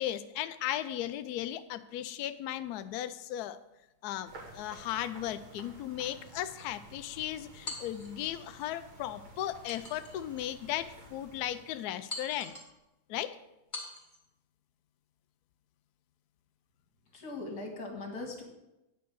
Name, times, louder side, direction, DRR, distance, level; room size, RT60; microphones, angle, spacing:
voice 1, 0.0-3.6 4.0-12.6 13.1-13.4, left 12 dB, 85° left, 12 dB, 0.8 m, -36 dB
sound 1, 4.3-12.2, right 2 dB, 70° right, 2.6 m, -53 dB
sound 2, 7.7-8.4 9.7-10.5 11.0-11.1 12.1-12.8 13.7-14.2, left 2 dB, 25° left, 2.3 m, -43 dB
voice 2, 17.1-18.4, left 2 dB, 50° left, 2 dB, 2.4 m, -40 dB
9.3 x 5.0 x 7.9 m, 0.95 s
omnidirectional pair, 2.2 m